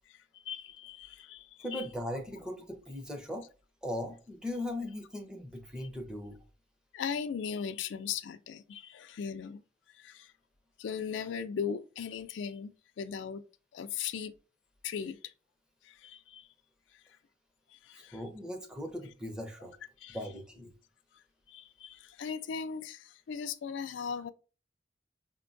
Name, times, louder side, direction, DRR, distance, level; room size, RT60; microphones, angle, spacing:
voice 1, 0.1-1.9 5.8-5.9 6.9-9.6 9.9-10.3 10.8-13.4 13.7-14.3 14.8-15.3 15.8-16.5 17.7-18.2 20.0-20.2 21.5-24.3, left 7 dB, 75° left, 0.3 m, -38 dB
voice 2, 1.6-3.4 3.8-6.4 18.1-19.7 20.1-20.7, left 1 dB, 5° right, 0.6 m, -39 dB
5.2 x 2.2 x 2.5 m
head